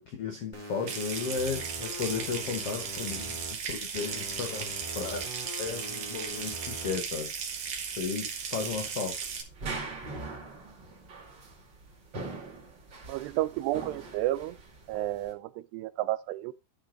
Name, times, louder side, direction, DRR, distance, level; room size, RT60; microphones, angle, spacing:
voice 1, 0.0-5.2 5.6-7.3 7.9-9.2, left 6 dB, 75° left, 1.3 m, -35 dB
sound 1, 0.5-3.5 3.9-7.0, equal, 10° right, 1.9 m, -43 dB
Water tap faucet / Sink (filling or washing) / Trickle dribble, 0.9-9.4, right 6 dB, 60° right, 1.6 m, -36 dB
sound 2, 1.1-15.3, right 3 dB, 35° right, 2.0 m, -45 dB
voice 2, 13.1-14.6 14.9-16.5, right 15 dB, 85° right, 2.8 m, -31 dB
11.5 x 5.2 x 3.8 m
omnidirectional pair, 4.8 m